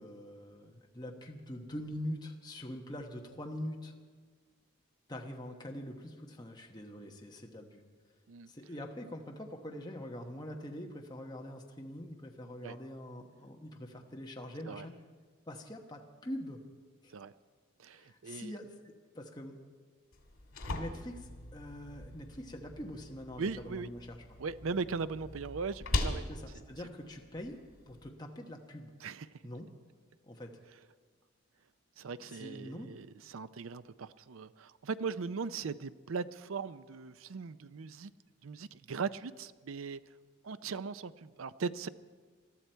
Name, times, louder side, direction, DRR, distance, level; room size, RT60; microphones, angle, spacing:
voice 1, 0.0-3.9 5.1-7.8 8.5-14.9 15.5-16.6 17.0-17.1 17.9-19.6 20.7-24.2 26.3-27.6 27.9-28.9 29.4-29.7 30.2-30.5 32.2-32.9, left 1 dB, 20° left, 1 dB, 1.1 m, -44 dB
voice 2, 17.8-18.5 23.4-23.9 24.4-26.2 26.5-26.6 29.0-29.3 32.0-38.1 38.4-40.0 40.4-41.9, right 5 dB, 80° right, 15 dB, 0.5 m, -39 dB
sound 1, 20.1-28.1, left 1 dB, 90° left, 2.0 m, -41 dB
21.0 x 13.0 x 4.5 m, 1.5 s
head